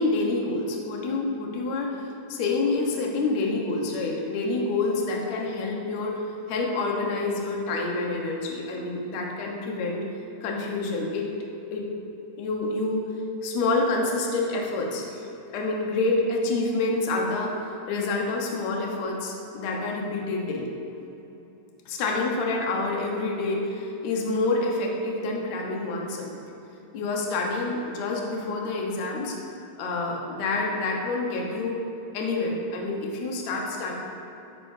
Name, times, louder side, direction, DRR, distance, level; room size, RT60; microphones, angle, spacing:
voice 1, 0.0-2.0 2.3-6.1 6.5-10.0 10.4-11.3 11.7-11.8 12.4-13.0 13.4-15.2 15.5-17.5 17.9-20.7 21.9-26.3 26.9-29.4 29.8-31.8 32.1-33.9, left 3 dB, 60° left, -1 dB, 2.2 m, -27 dB
12.5 x 12.0 x 2.7 m, 2.9 s
omnidirectional pair, 4.1 m